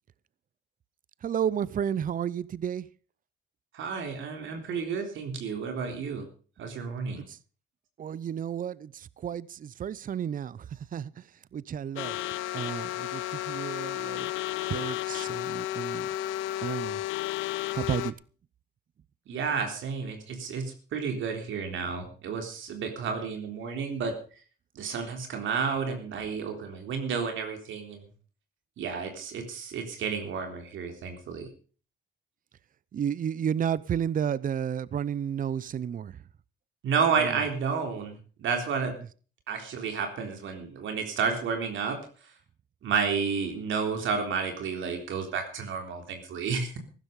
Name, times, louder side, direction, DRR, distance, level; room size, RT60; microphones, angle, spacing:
voice 1, 1.2-2.9 7.2-7.4 8.0-10.7 10.9-11.1 11.5-12.2 12.5-14.3 14.7-16.1 16.6-17.0 17.7-18.1 32.9-36.2 37.2-37.3, right 8 dB, 45° right, 0.6 m, -32 dB
voice 2, 3.7-6.2 6.6-7.2 19.3-24.1 24.8-28.1 28.8-31.5 36.8-38.9 39.5-42.0 42.8-46.8, right 5 dB, 75° right, 3.7 m, -31 dB
sound 1, 12.0-18.1, left 14 dB, 90° left, 0.7 m, -32 dB
15.0 x 12.0 x 5.3 m
cardioid pair, 90°, 20 cm